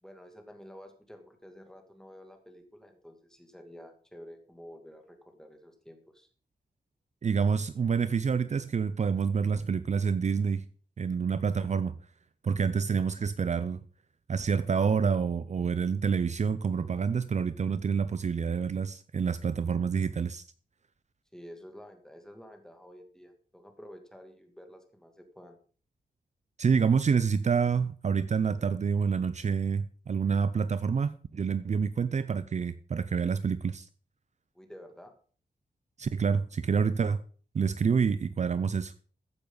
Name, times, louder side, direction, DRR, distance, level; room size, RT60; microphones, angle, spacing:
voice 1, 0.0-6.3 21.3-25.6 34.5-35.1, equal, 5° left, 2.5 m, -50 dB
voice 2, 7.2-10.6 11.0-11.9 12.4-13.8 14.3-20.4 26.6-33.9 36.0-37.2 37.5-38.9, right 6 dB, 45° right, 0.6 m, -27 dB
14.0 x 10.0 x 4.0 m
wide cardioid pair, 105°, 16 cm